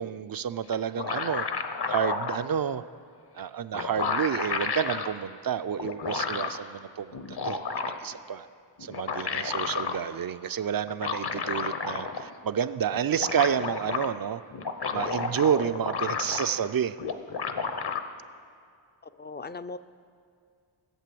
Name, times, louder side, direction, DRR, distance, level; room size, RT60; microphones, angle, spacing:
voice 1, 0.0-1.5 1.9-2.8 3.3-8.5 8.8-14.4 14.9-17.0, right 8 dB, 50° right, 13 dB, 0.5 m, -30 dB
sound 1, 0.7-2.4 3.4-3.5 3.7-5.1 5.8-6.6 7.1-8.1 8.8-10.0 10.9-12.3 12.6-12.7 12.9-14.1 14.5-16.7 17.0-18.0, left 5 dB, 55° left, 1.0 m, -31 dB
voice 2, 19.0-19.8, left 3 dB, 25° left, 12 dB, 0.4 m, -39 dB
15.0 x 8.3 x 7.7 m, 2.3 s
wide cardioid pair, 80°, 47 cm